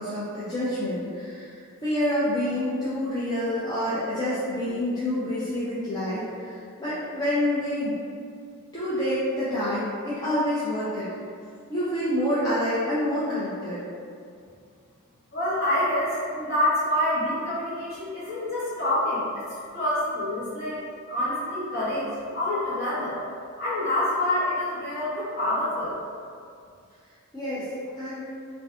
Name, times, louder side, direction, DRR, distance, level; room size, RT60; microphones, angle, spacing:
voice 1, 0.0-8.0 8.7-11.1 11.7-13.8 27.3-27.7 28.0-28.2, left 1 dB, 15° left, -12 dB, 0.4 m, -27 dB
voice 2, 15.3-19.4 19.7-23.2 23.6-25.9, left 1 dB, 45° left, -11 dB, 1.1 m, -27 dB
2.6 x 2.3 x 3.4 m, 2.3 s
head